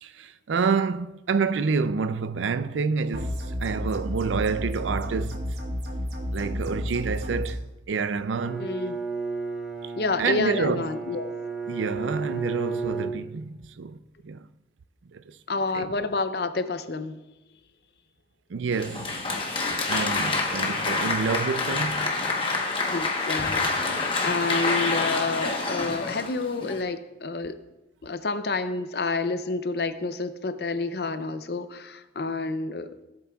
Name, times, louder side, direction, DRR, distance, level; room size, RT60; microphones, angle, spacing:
voice 1, 0.0-5.6 6.3-8.7 9.8-9.9 10.2-10.9 11.7-14.0 14.2-14.4 15.1-15.4 15.7-15.9 18.5-19.2 19.9-22.0, right 5 dB, 85° right, 0.4 m, -28 dB
sound 1, 3.1-7.5, equal, 60° right, 1.4 m, -31 dB
Bowed string instrument, 8.3-13.8, right 4 dB, 5° right, 0.7 m, -33 dB
voice 2, 8.6-9.0 10.0-11.3 15.5-17.2 22.8-27.6 28.0-33.0, left 3 dB, 55° left, 0.6 m, -29 dB
Applause, 18.7-26.8, left 3 dB, 30° left, 1.1 m, -27 dB
17.0 x 7.7 x 2.4 m
head